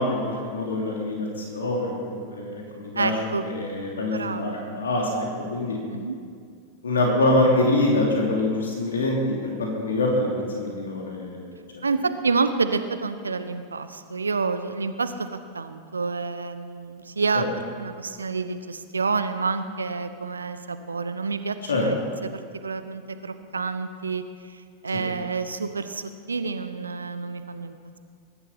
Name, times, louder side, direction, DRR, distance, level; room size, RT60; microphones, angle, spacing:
voice 1, 0.0-3.1 3.4-5.8 6.8-11.5 17.3-17.5 21.7-21.8, left 2 dB, 70° left, -1 dB, 3.0 m, -25 dB
voice 2, 2.9-3.4 4.1-4.6 5.9-6.2 11.8-17.5 17.8-21.9 22.2-24.2 24.5-28.0, right 4 dB, 75° right, 11 dB, 0.9 m, -28 dB
21.5 x 11.5 x 5.7 m, 2.2 s
figure-of-eight pair, 90°, 0 cm